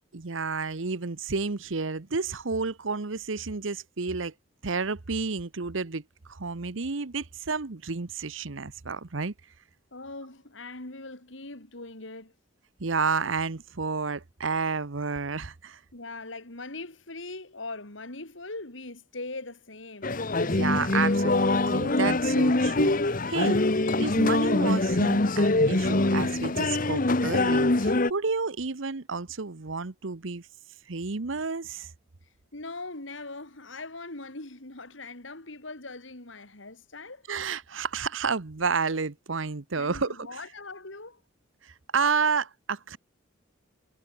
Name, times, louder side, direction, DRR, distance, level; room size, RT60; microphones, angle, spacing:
voice 1, 0.1-4.3 4.6-9.3 12.8-15.8 20.4-23.6 24.0-30.5 30.9-31.9 37.3-40.2 41.6-43.0, right 4 dB, 80° right, 1.0 m, -31 dB
voice 2, 9.9-12.3 15.9-20.2 32.5-37.3 39.8-41.2, left 2 dB, 75° left, 3.5 m, -41 dB
sound 1, 20.0-28.1, left 2 dB, 45° left, 1.2 m, -24 dB
head